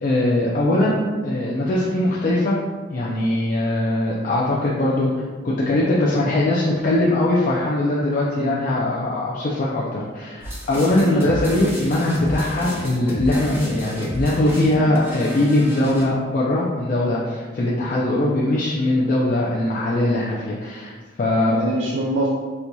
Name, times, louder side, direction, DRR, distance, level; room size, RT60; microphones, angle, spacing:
voice 1, 0.0-2.6 2.9-5.1 5.4-20.9 21.2-21.6, left 1 dB, 40° left, -5 dB, 0.4 m, -21 dB
sound 1, 10.4-16.0, equal, 10° right, 0.5 m, -31 dB
voice 2, 21.5-22.3, right 2 dB, 70° right, -4 dB, 0.4 m, -26 dB
4.3 x 2.6 x 2.2 m, 1.4 s
head